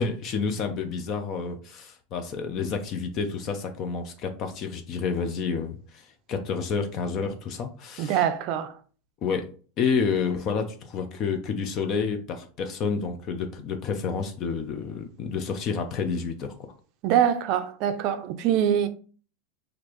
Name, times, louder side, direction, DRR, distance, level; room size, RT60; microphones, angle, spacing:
voice 1, 0.0-8.2 9.2-9.5 9.8-16.7, left 5 dB, 30° left, 0.5 m, -29 dB
voice 2, 8.0-8.7 17.0-18.9, right 9 dB, 40° right, 0.5 m, -24 dB
6.4 x 2.5 x 3.0 m
supercardioid pair, 170°, 0 cm